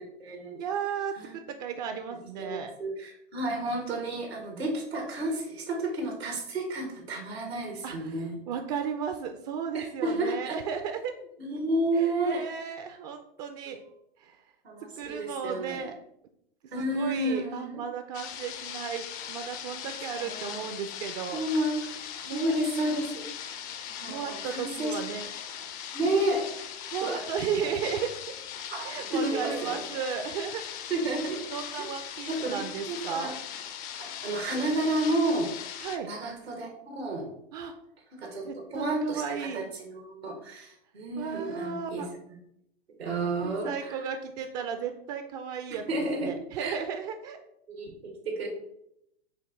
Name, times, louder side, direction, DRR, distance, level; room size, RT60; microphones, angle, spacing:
voice 1, 0.0-0.6 1.2-1.4 2.4-8.4 9.7-10.6 11.4-12.4 13.7-13.8 14.6-15.9 16.7-17.8 20.1-20.6 21.3-21.8 22.3-23.6 24.0-24.9 25.9-26.7 27.0-27.2 28.7-29.8 30.9-31.4 32.3-33.3 34.0-35.5 36.0-37.3 38.1-38.4 38.7-42.0 43.0-44.1 45.9-46.8 47.7-48.5, right 1 dB, 90° right, 1 dB, 1.2 m, -31 dB
voice 2, 0.6-2.7 7.8-11.1 11.9-13.8 14.2-14.4 15.0-15.9 16.7-21.4 22.2-22.5 24.1-25.3 26.9-28.3 28.8-30.6 31.5-33.4 35.8-36.1 37.5-37.7 38.4-39.7 41.2-42.1 43.4-45.9 46.2-47.4, right 7 dB, 45° right, 7 dB, 0.4 m, -35 dB
sound 1, 18.1-36.0, left 9 dB, 30° left, 0.4 m, -40 dB
5.2 x 2.6 x 3.5 m, 0.77 s
hypercardioid pair, 105°, 30 cm